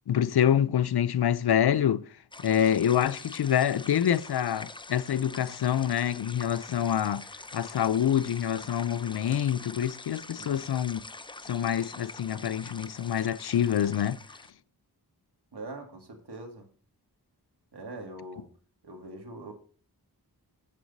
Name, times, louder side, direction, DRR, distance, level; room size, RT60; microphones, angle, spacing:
voice 1, 0.1-2.0 2.4-7.3 7.5-11.0 11.4-14.2, left 9 dB, 75° left, 0.6 m, -26 dB
sound 1, 2.3-14.5, left 2 dB, 15° left, 0.5 m, -45 dB
voice 2, 15.5-16.6 17.7-18.5 18.8-19.5, right 2 dB, 85° right, 2.0 m, -42 dB
7.7 x 7.3 x 4.0 m
cardioid pair, 45°, 39 cm